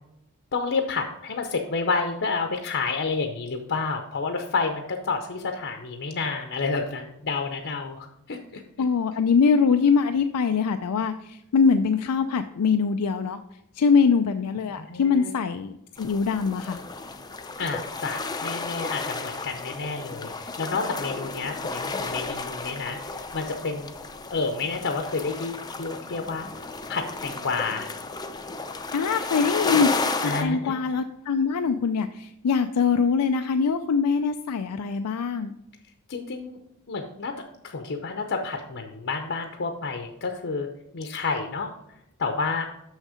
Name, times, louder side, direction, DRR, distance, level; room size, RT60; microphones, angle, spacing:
voice 1, 0.5-8.6 14.8-15.3 17.6-24.0 24.3-26.5 26.9-27.9 30.2-30.8 36.1-36.6 36.9-37.3 37.6-40.7 40.9-41.7 42.2-42.7, left 4 dB, 55° left, 4 dB, 0.7 m, -30 dB
voice 2, 8.8-13.4 13.7-16.8 28.9-35.5, left 5 dB, 85° left, 8 dB, 0.4 m, -23 dB
sound 1, 16.0-30.4, left 3 dB, 20° left, 0.5 m, -33 dB
6.5 x 6.3 x 4.9 m, 0.83 s
head